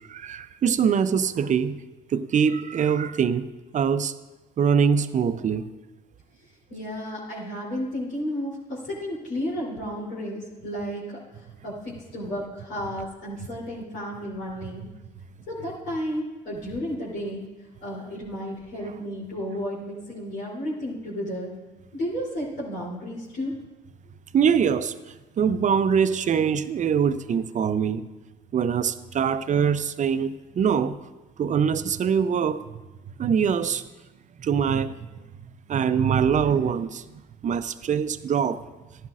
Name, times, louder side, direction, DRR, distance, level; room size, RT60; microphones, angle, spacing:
voice 1, 0.1-1.8 2.1-3.5 3.7-4.1 4.6-5.7 24.3-28.1 28.5-31.0 31.4-32.8 33.2-33.8 34.4-35.1 35.7-37.1 37.4-38.6, right 7 dB, 45° right, 0.6 m, -23 dB
voice 2, 6.7-14.8 15.5-17.4 17.8-21.5 21.9-23.5, equal, 75° left, 3.3 m, -32 dB
14.5 x 11.0 x 2.5 m
supercardioid pair, 65°, 18 cm